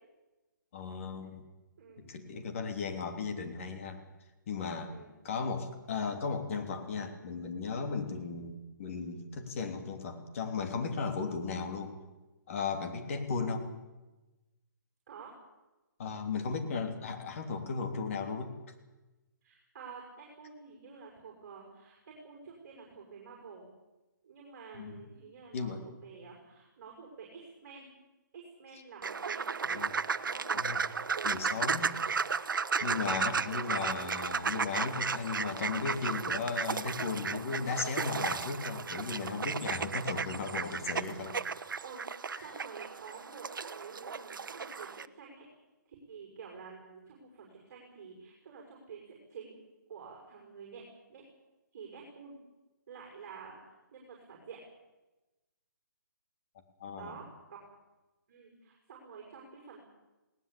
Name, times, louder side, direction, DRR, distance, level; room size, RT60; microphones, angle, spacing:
voice 1, 0.7-1.4 2.0-4.0 4.5-5.0 5.2-11.9 12.5-13.7 16.0-18.5 24.7-25.0 25.5-25.8 29.7-29.9 30.5-30.8 31.2-31.9 32.8-41.4 42.4-42.5 56.8-57.2, left 5 dB, 40° left, 5 dB, 3.3 m, -36 dB
voice 2, 1.8-2.1 4.8-5.1 12.8-13.0 15.1-15.3 19.4-22.0 22.2-23.7 24.2-27.9 28.3-29.8 30.1-30.7 31.1-31.3 32.8-34.1 41.5-43.5 43.7-45.4 45.9-49.6 49.9-50.8 51.1-51.2 51.7-52.3 52.9-54.6 57.0-57.2 57.5-57.6 58.3-59.8, right 6 dB, 40° right, 0 dB, 5.8 m, -49 dB
sound 1, 29.0-45.1, right 5 dB, 80° right, 1.0 m, -34 dB
20.0 x 18.0 x 8.7 m, 1.1 s
hypercardioid pair, 165°, 11 cm